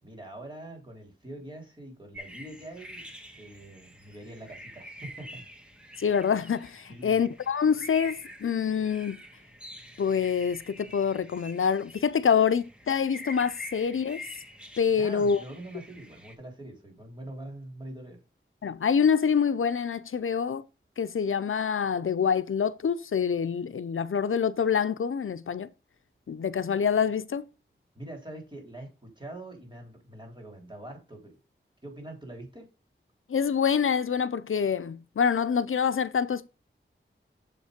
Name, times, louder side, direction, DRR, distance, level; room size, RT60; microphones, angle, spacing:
voice 1, 0.0-3.0 3.4-5.4 6.9-7.2 14.9-18.2 27.9-31.4 31.8-32.7, right 1 dB, 25° right, 3.2 m, -44 dB
sound 1, 2.1-16.4, left 1 dB, 5° right, 1.5 m, -47 dB
voice 2, 6.0-9.2 10.0-14.2 14.8-15.4 18.6-20.6 21.0-25.7 26.3-27.5 33.3-36.5, left 7 dB, 85° left, 0.5 m, -26 dB
7.3 x 5.3 x 5.1 m
wide cardioid pair, 80°, 21 cm